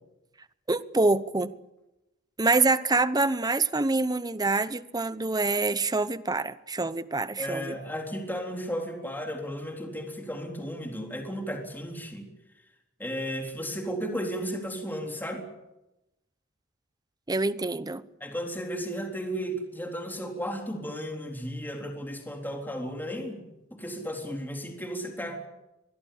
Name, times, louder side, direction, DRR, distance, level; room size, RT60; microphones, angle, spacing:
voice 1, 0.7-1.5 2.4-7.8 17.3-18.0, right 3 dB, 20° right, 0.9 m, -26 dB
voice 2, 7.4-12.2 13.0-15.5 18.2-25.4, equal, 10° left, 3.8 m, -34 dB
24.5 x 20.5 x 8.6 m
head